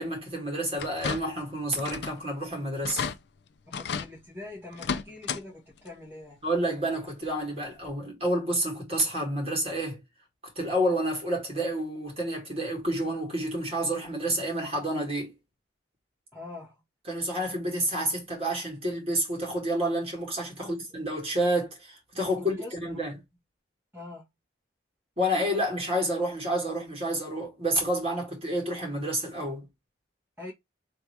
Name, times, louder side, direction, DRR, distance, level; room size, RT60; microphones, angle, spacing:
voice 1, 0.0-3.1 6.4-10.0 10.6-15.3 17.1-22.6 22.8-23.1 25.2-29.7, right 1 dB, 30° right, 2.0 m, -29 dB
sound 1, 0.8-1.5 1.8-2.2 2.5-2.6 2.8-3.2 3.7-4.1 4.7-5.4 5.8-5.9 7.3-7.4 7.9-8.0, left 6 dB, 65° left, 0.4 m, -33 dB
voice 2, 3.7-6.4 16.3-16.8 20.6-20.7 22.4-23.1 23.9-24.2 30.4-30.5, left 2 dB, 10° right, 1.7 m, -43 dB
3.5 x 2.8 x 4.5 m
head